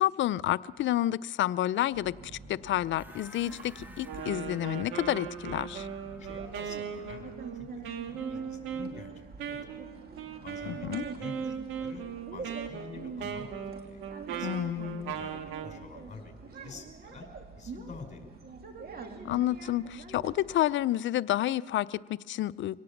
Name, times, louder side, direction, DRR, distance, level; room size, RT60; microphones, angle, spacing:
voice 1, 0.0-2.1 2.5-5.9 10.7-11.0 14.4-15.1 19.2-22.8, left 13 dB, 70° left, 17 dB, 0.6 m, -29 dB
sound 1, 1.9-20.6, right 4 dB, 50° right, 2.6 m, -46 dB
sound 2, 3.0-7.4, equal, 10° right, 2.3 m, -54 dB
Wind instrument woodwind instrument, 4.0-15.8, right 7 dB, 90° right, 1.8 m, -38 dB
voice 2, 6.2-9.9 10.4-12.0 12.3-13.5 13.8-14.0 14.3-14.5 15.1-17.3 17.6-18.5, left 4 dB, 40° left, 4 dB, 5.1 m, -48 dB
25.0 x 18.0 x 7.2 m, 1.4 s
cardioid pair, 90°, 20 cm